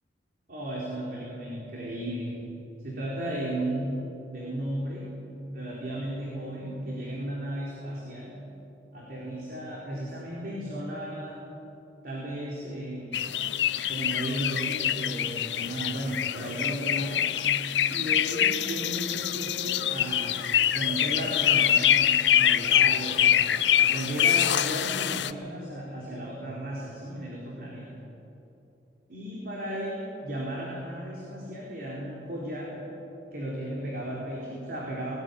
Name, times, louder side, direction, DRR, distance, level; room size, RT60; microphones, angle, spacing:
voice 1, 0.5-2.4 2.8-5.2 5.5-8.4 8.9-11.4 12.0-13.3 13.9-17.4 17.9-28.0 29.1-32.9 33.3-35.2, right 1 dB, 60° right, -4 dB, 4.1 m, -35 dB
sound 1, 13.1-25.3, left 10 dB, 85° left, 0.6 m, -25 dB
18.5 x 18.5 x 9.8 m, 3.0 s
head